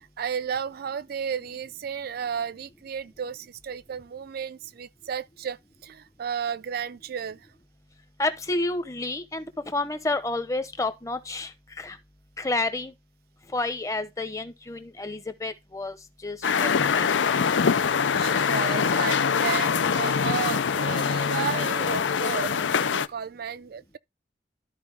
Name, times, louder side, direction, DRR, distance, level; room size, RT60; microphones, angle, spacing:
voice 1, 0.0-7.5 18.2-24.0, right 7 dB, 55° right, 0.4 m, -33 dB
voice 2, 8.2-11.5 11.8-12.0 12.4-12.9 13.5-16.0 16.2-17.2, left 2 dB, 20° left, 0.9 m, -30 dB
sound 1, 16.4-23.1, left 6 dB, 80° left, 0.5 m, -24 dB
12.5 x 4.6 x 3.4 m
head